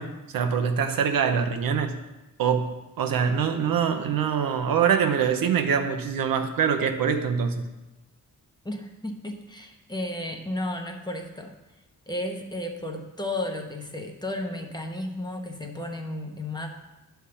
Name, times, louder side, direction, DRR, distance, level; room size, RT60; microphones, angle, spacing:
voice 1, 0.0-2.0 2.4-7.7, right 7 dB, 90° right, 6 dB, 0.8 m, -24 dB
voice 2, 8.6-11.6 12.1-16.7, left 1 dB, 10° left, 3 dB, 0.9 m, -33 dB
9.9 x 3.5 x 6.9 m, 1.0 s
wide cardioid pair, 115°, 34 cm